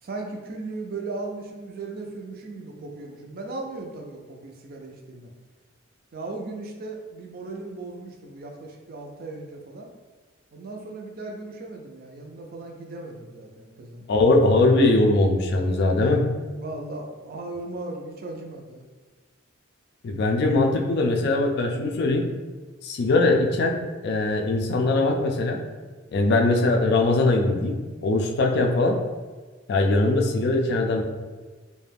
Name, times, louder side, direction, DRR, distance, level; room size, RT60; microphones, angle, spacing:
voice 1, 0.0-5.3 6.1-9.9 10.5-14.0 15.9-16.2 16.5-18.8, right 2 dB, 50° right, 1 dB, 0.4 m, -37 dB
voice 2, 14.1-16.2 20.0-22.2 22.8-23.8 24.0-25.6 26.1-29.0 29.7-31.0, left 2 dB, 55° left, 2 dB, 0.3 m, -21 dB
2.4 x 2.1 x 3.3 m, 1.3 s
head